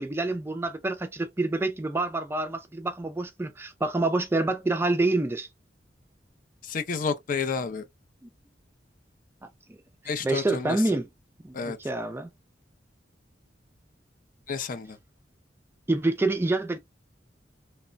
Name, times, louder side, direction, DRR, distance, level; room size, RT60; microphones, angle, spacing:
voice 1, 0.0-5.5 8.2-8.3 9.7-9.8 10.2-11.1 11.4-12.3 15.9-16.8, right 2 dB, 15° right, 0.3 m, -27 dB
voice 2, 6.6-7.9 10.1-10.8 11.5-11.8 14.5-15.0, left 5 dB, 50° left, 0.5 m, -30 dB
3.1 x 2.1 x 2.4 m
head